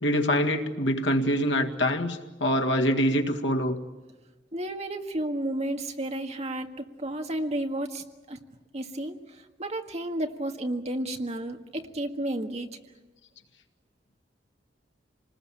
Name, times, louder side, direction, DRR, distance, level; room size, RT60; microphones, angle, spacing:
voice 1, 0.0-3.8, equal, 80° left, 4 dB, 2.0 m, -25 dB
voice 2, 4.5-8.4 8.7-9.2 9.6-12.7, right 1 dB, 35° right, 4 dB, 1.8 m, -32 dB
27.0 x 20.0 x 8.8 m, 1.2 s
head